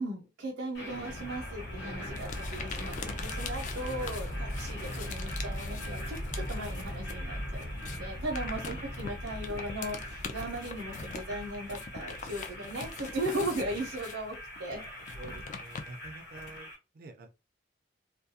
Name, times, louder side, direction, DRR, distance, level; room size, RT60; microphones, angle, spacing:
voice 1, 0.0-14.8, right 1 dB, 90° right, 0.6 m, -37 dB
sound 1, 0.7-16.7, equal, 65° left, 1.0 m, -39 dB
sound 2, 2.2-7.2 7.5-16.6, left 5 dB, 40° left, 0.3 m, -43 dB
voice 2, 4.4-4.7 8.7-9.1 14.6-17.3, right 3 dB, 50° right, 0.4 m, -49 dB
2.3 x 2.2 x 2.7 m
head